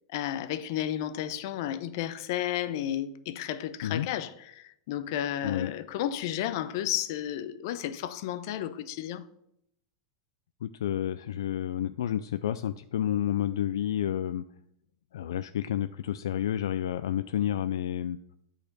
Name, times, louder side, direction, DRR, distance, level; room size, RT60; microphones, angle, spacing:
voice 1, 0.1-9.2, left 11 dB, 60° left, 0.7 m, -32 dB
voice 2, 10.6-14.4 15.1-18.2, left 11 dB, 85° left, 0.3 m, -30 dB
8.7 x 4.2 x 6.6 m
supercardioid pair, 130°, 2 cm